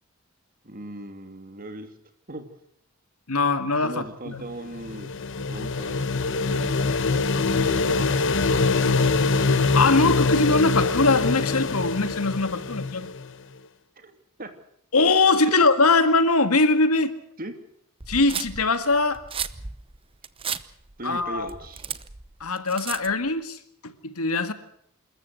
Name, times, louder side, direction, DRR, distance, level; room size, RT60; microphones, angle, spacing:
voice 1, 0.6-1.9 2.3-2.4 3.8-5.1 5.5-6.8 7.9-8.1 14.0-14.5 15.4-15.6 17.4-17.5 21.0-21.8, right 1 dB, 40° right, 7 dB, 2.8 m, -38 dB
voice 2, 3.3-4.4 9.7-13.1 14.9-17.1 18.1-19.2 21.0-21.5 22.4-24.5, left 3 dB, 75° left, 10 dB, 2.0 m, -22 dB
sound 1, 4.5-13.3, left 3 dB, 55° left, 1.0 m, -24 dB
sound 2, 18.0-23.3, right 7 dB, 25° right, 0.8 m, -34 dB
27.0 x 14.0 x 8.0 m, 0.69 s
head